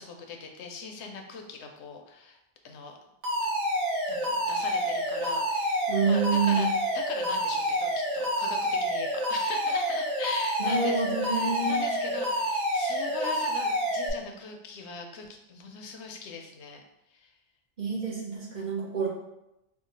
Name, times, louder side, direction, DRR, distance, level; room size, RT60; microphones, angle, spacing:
voice 1, 0.0-2.4 2.6-3.0 4.1-6.7 6.9-16.8 17.1-17.3 18.6-18.8, left 4 dB, 70° left, 4 dB, 0.8 m, -41 dB
Alarm, 3.2-14.1, equal, 75° right, 1.1 m, -28 dB
voice 2, 5.9-6.7 10.6-11.8 17.8-19.1, right 5 dB, 45° right, -5 dB, 0.8 m, -27 dB
2.9 x 2.3 x 3.8 m, 0.89 s
omnidirectional pair, 1.2 m